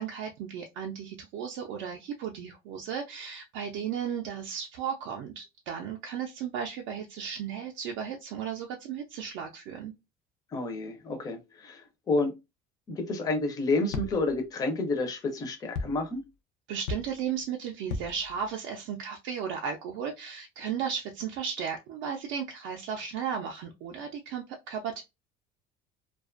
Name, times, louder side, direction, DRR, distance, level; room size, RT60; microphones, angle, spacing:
voice 1, 0.0-9.9 16.7-25.0, right 7 dB, 65° right, 0.4 m, -35 dB
voice 2, 10.5-12.3 12.9-16.2, left 2 dB, 20° left, 0.4 m, -30 dB
sound 1, 13.9-14.5 15.8-16.2 16.9-17.4 17.9-18.5, left 3 dB, 75° left, 0.5 m, -36 dB
2.4 x 2.3 x 2.4 m
cardioid pair, 180°, 20 cm